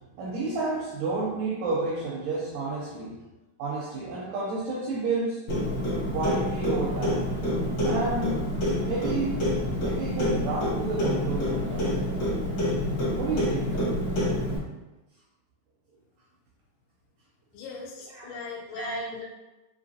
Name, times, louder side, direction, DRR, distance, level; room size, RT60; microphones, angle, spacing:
voice 1, 0.2-3.2 3.6-5.5 6.1-7.3 7.8-8.4 8.8-12.0 13.2-13.8 18.1-18.3 18.7-19.0, right 3 dB, 85° right, -5 dB, 1.9 m, -31 dB
Clock, 5.5-14.6, left 1 dB, 55° left, 1.3 m, -27 dB
voice 2, 17.5-19.2, left 4 dB, 90° left, -3 dB, 2.7 m, -39 dB
6.1 x 2.8 x 2.8 m, 1.1 s
omnidirectional pair, 4.6 m